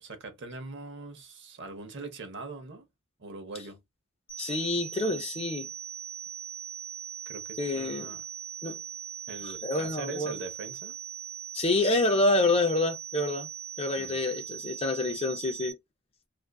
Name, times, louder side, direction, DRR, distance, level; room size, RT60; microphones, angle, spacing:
voice 1, 0.0-2.9 3.2-3.8 7.3-8.2 9.3-11.0 13.9-14.2, right 3 dB, 60° right, 0.7 m, -42 dB
sound 1, 4.3-15.7, right 9 dB, 80° left, 0.8 m, -40 dB
voice 2, 4.4-5.7 7.6-8.1 8.6-8.8 9.4-10.3 11.5-13.5 13.8-15.8, left 2 dB, 30° left, 0.4 m, -27 dB
2.4 x 2.3 x 2.2 m
head